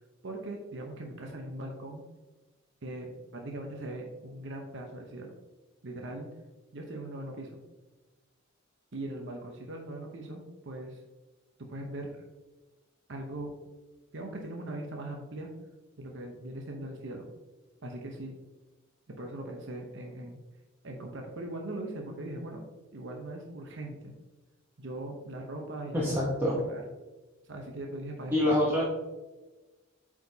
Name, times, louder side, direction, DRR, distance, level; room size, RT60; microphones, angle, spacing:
voice 1, 0.2-2.0 2.8-5.3 5.8-6.3 6.7-7.6 8.9-11.0 11.6-12.1 13.1-13.5 14.1-15.5 16.0-17.3 17.8-18.4 19.2-20.4 20.8-22.6 22.9-24.1 24.8-26.2 26.7-26.8 27.5-28.6, right 1 dB, 60° right, 1 dB, 0.9 m, -40 dB
voice 2, 25.9-26.6 28.3-28.8, left 1 dB, 10° right, -6 dB, 1.0 m, -26 dB
7.8 x 5.0 x 2.8 m, 1.2 s
head